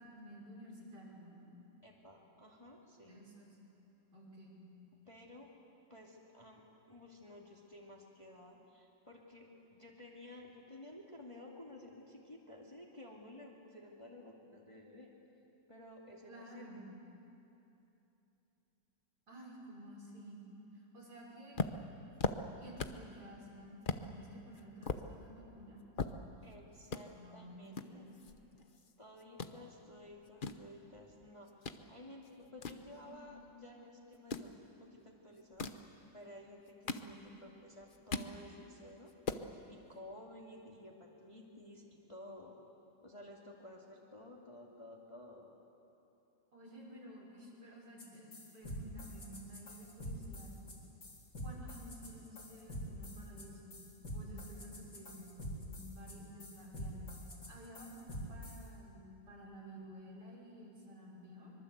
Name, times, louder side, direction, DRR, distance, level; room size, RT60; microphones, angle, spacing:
voice 1, 0.0-1.4 3.1-3.6 4.1-4.6 16.3-16.9 19.3-20.4 20.7-21.6 22.6-25.8 27.1-28.1 32.4-32.5 33.0-33.8 37.0-37.2 46.5-50.6 51.4-53.8 54.1-57.1 57.5-61.5, equal, 60° right, -4 dB, 6.5 m, -53 dB
voice 2, 1.8-3.2 5.1-5.5 5.9-15.1 15.7-16.8 21.1-21.2 26.4-28.0 29.0-35.7 36.1-39.1 39.5-42.6 43.0-45.5, left 1 dB, 15° left, -2 dB, 2.4 m, -54 dB
sound 1, 21.5-23.1 23.4-23.5 23.8-24.1 24.5-26.5 26.8-27.0 27.7-28.9 29.2-29.5 30.1-31.8 32.2-33.5 34.1-34.5 35.4-35.9 36.5-37.5 37.8-38.4 38.8-38.9 39.1-39.5, left 4 dB, 40° left, 0.7 m, -40 dB
sound 2, 48.0-48.1 48.3-58.6, equal, 60° left, 4.5 m, -46 dB
25.0 x 23.0 x 8.2 m, 2.9 s
omnidirectional pair, 2.0 m